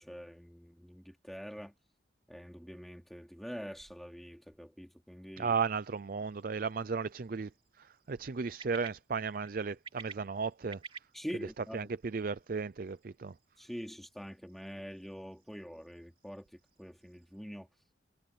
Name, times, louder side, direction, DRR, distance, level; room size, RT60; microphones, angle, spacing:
voice 1, 0.0-1.7 2.3-5.5 11.1-11.9 13.6-17.7, equal, ahead, 3.1 m, -45 dB
voice 2, 5.4-7.5 7.8-10.8 11.7-13.3, right 5 dB, 50° right, 0.5 m, -35 dB
sound 1, 5.7-17.4, right 5 dB, 30° right, 3.4 m, -56 dB
head